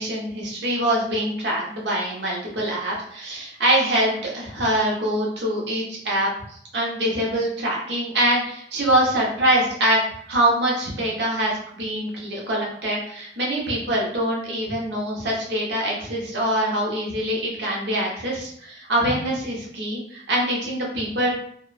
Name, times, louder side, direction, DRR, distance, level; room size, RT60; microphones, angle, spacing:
voice 1, 0.0-6.3 6.7-10.0 10.3-21.3, right 1 dB, 80° right, -3 dB, 0.9 m, -24 dB
3.0 x 2.0 x 2.4 m, 0.66 s
head